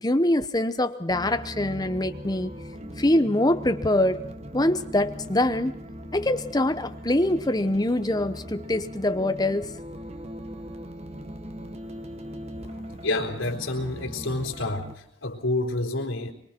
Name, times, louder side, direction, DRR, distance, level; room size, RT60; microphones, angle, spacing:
voice 1, 0.0-2.5 3.0-4.2 4.5-5.7 6.1-9.7, left 1 dB, 20° left, 10 dB, 0.9 m, -24 dB
sound 1, 1.1-14.9, equal, 30° right, 1.2 m, -39 dB
voice 2, 12.6-16.3, left 2 dB, 85° left, 0 dB, 4.1 m, -29 dB
24.5 x 23.5 x 4.5 m, 0.69 s
head